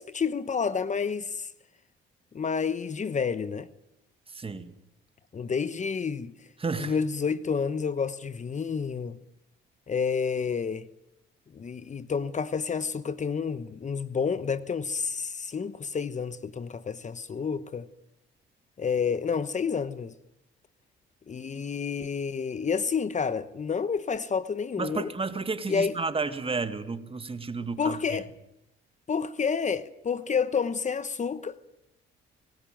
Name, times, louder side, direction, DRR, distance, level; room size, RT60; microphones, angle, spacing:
voice 1, 0.0-1.5 2.3-3.7 5.3-6.3 6.8-9.2 9.9-10.9 11.5-17.9 18.8-20.1 21.3-25.1 25.7-26.0 27.8-28.3 29.1-31.6, left 6 dB, 35° left, 1.1 m, -29 dB
voice 2, 4.3-4.7 6.6-7.0 24.8-28.2, right 4 dB, 30° right, 2.1 m, -32 dB
25.0 x 19.0 x 9.2 m
cardioid pair, 90°, 20 cm